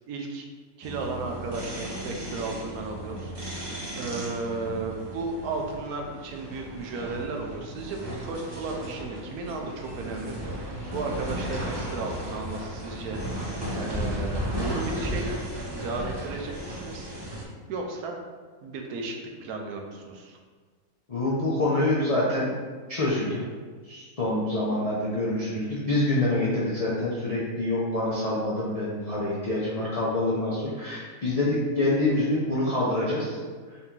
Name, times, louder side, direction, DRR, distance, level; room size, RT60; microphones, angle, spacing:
voice 1, 0.1-0.4 0.8-15.4 15.7-17.4 17.7-18.2 18.6-20.4, right 3 dB, 80° right, 2 dB, 1.1 m, -34 dB
sound 1, 0.8-17.4, equal, 25° right, 0.5 m, -35 dB
voice 2, 21.1-22.6 22.9-23.4 23.8-33.4, left 1 dB, 50° left, -8 dB, 0.4 m, -26 dB
4.0 x 2.9 x 3.6 m, 1.5 s
omnidirectional pair, 1.6 m